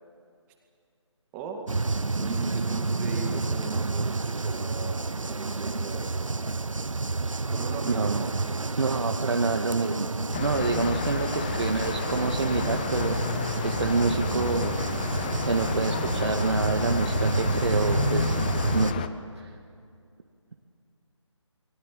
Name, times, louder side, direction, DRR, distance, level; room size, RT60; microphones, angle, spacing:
sound 1, 1.7-18.9, right 3 dB, 90° right, 0.9 m, -29 dB
voice 1, 2.2-6.3 7.4-8.5, right 5 dB, 15° right, 2 dB, 2.2 m, -39 dB
voice 2, 7.9-8.3 8.8-10.1 10.4-14.8 15.4-18.3 18.7-18.9 19.4-19.6, right 3 dB, 60° right, 2 dB, 1.9 m, -27 dB
sound 2, 10.3-19.1, left 7 dB, 15° left, 0.6 m, -31 dB
29.0 x 22.0 x 7.7 m, 2.4 s
figure-of-eight pair, 160°, 16 cm